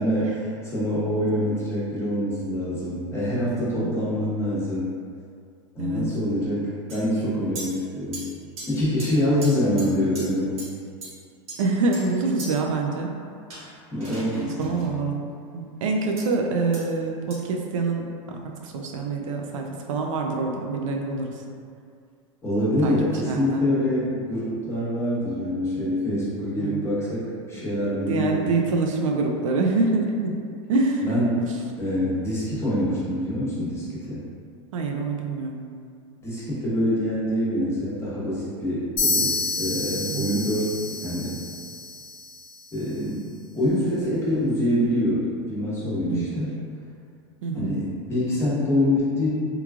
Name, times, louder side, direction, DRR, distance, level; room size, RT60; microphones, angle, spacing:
voice 1, 0.0-4.9 5.7-8.3 8.7-10.6 13.9-14.9 22.4-28.5 31.0-31.4 31.8-34.2 36.2-40.7 41.0-41.4 42.7-43.3 43.5-46.5 47.5-49.3, left 1 dB, 15° left, -9 dB, 1.0 m, -25 dB
voice 2, 3.8-4.1 5.8-6.1 11.6-13.2 14.4-15.2 15.5-21.4 22.8-22.9 23.3-23.6 26.6-26.8 28.0-30.4 30.7-31.2 34.7-35.6 40.1-40.4 46.1-46.3 47.4-47.7, right 3 dB, 90° right, 1 dB, 0.4 m, -26 dB
sound 1, 6.9-7.0 7.5-7.7 8.1-8.2 8.6-8.7 9.0-9.1 9.4-9.5 9.8-9.9 10.1-10.2 10.6-10.7 11.0-11.1 11.5-12.0 12.4-12.5 13.5-14.9 16.2-16.3 16.7-16.8 17.3-17.4, right 2 dB, 40° right, 1.0 m, -37 dB
sound 2, 39.0-42.7, left 3 dB, 80° left, 0.8 m, -29 dB
3.1 x 2.3 x 2.3 m, 2.3 s
supercardioid pair, 120°, 16 cm